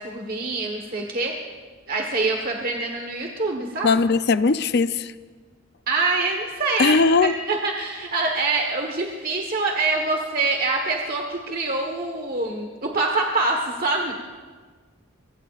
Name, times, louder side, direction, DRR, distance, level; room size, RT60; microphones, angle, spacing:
voice 1, 0.0-1.3 1.9-3.9 5.9-6.9 7.2-14.2, right 3 dB, 45° right, 1 dB, 1.3 m, -25 dB
voice 2, 3.8-5.1 6.8-7.4, left 4 dB, 50° left, 13 dB, 0.5 m, -19 dB
25.5 x 23.0 x 2.5 m, 1.5 s
head